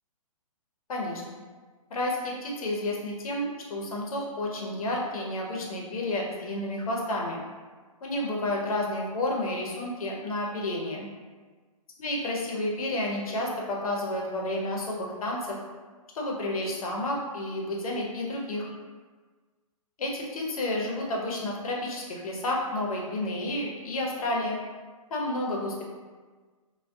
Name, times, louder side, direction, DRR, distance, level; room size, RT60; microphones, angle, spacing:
voice 1, 0.9-1.4 1.9-7.4 8.0-11.1 12.0-15.6 16.1-18.7 20.0-24.6 25.1-25.8, left 1 dB, 70° left, -2 dB, 0.7 m, -31 dB
2.2 x 2.2 x 2.6 m, 1.4 s
hypercardioid pair, 155°, 19 cm